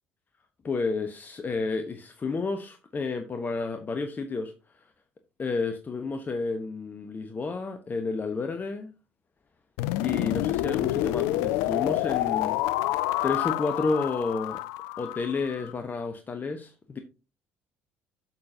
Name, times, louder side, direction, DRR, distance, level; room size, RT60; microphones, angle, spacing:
voice 1, 0.6-4.5 5.4-8.9 10.0-12.6 13.2-14.6 15.0-17.0, left 4 dB, 30° left, 1.0 m, -31 dB
sound 1, 9.8-15.7, left 16 dB, 60° left, 0.4 m, -28 dB
9.7 x 6.7 x 2.8 m
figure-of-eight pair, 55°, 6 cm